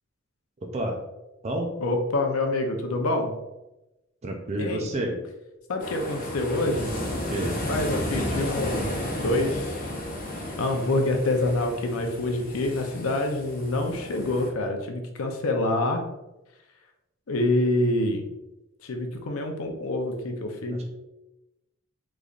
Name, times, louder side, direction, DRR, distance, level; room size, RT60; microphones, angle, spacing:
voice 1, 1.8-3.3 4.6-4.9 5.7-6.9 7.5-9.8 10.6-16.0 17.3-18.2 18.8-20.8, left 2 dB, 85° left, 4 dB, 0.6 m, -26 dB
voice 2, 4.2-5.2 7.3-7.5 20.7-20.8, right 1 dB, 30° right, 1 dB, 0.4 m, -29 dB
sound 1, 5.8-14.5, left 1 dB, 40° left, 0.7 m, -33 dB
3.9 x 3.2 x 2.4 m, 0.96 s
head